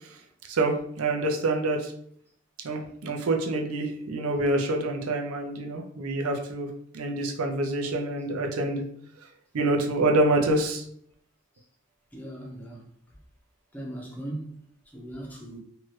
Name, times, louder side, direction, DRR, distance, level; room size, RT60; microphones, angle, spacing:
voice 1, 0.5-1.9 2.6-6.7 6.9-8.8 9.5-10.8, right 2 dB, 85° right, 0.5 m, -26 dB
voice 2, 12.1-12.8 13.7-14.6 14.9-15.6, right 1 dB, 10° left, 0.5 m, -38 dB
2.7 x 2.3 x 3.1 m
head